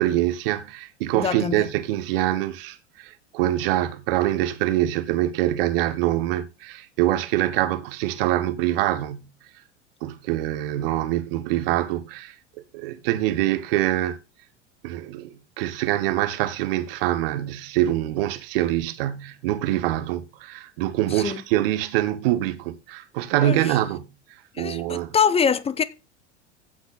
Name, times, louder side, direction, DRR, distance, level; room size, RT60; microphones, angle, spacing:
voice 1, 0.0-9.3 10.0-12.3 12.7-14.2 14.8-24.1 24.6-25.1, right 14 dB, 50° right, 1.4 m, -24 dB
voice 2, 1.1-1.7 21.1-21.4 23.4-23.8 24.5-25.8, left 7 dB, 15° left, 0.8 m, -24 dB
15.5 x 5.9 x 4.2 m
figure-of-eight pair, 80°, 35 cm